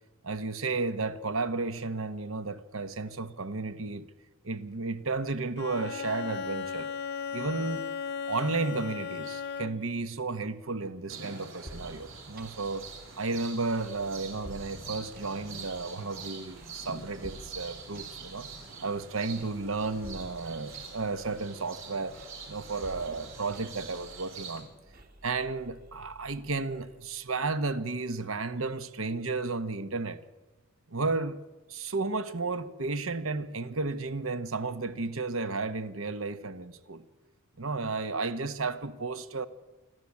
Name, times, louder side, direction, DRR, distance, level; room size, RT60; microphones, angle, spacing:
voice 1, 0.2-4.1 4.4-6.9 7.3-7.8 8.3-12.9 13.2-18.5 18.8-22.2 22.5-24.7 25.2-30.2 30.9-31.4 31.7-37.0 37.6-39.5, right 3 dB, 85° right, 1.3 m, -33 dB
Bowed string instrument, 5.6-10.0, left 6 dB, 55° left, 0.7 m, -36 dB
sound 1, 11.1-24.6, right 5 dB, 65° right, 5.3 m, -45 dB
sound 2, 11.7-27.3, equal, 45° right, 1.9 m, -51 dB
27.0 x 12.5 x 8.6 m
head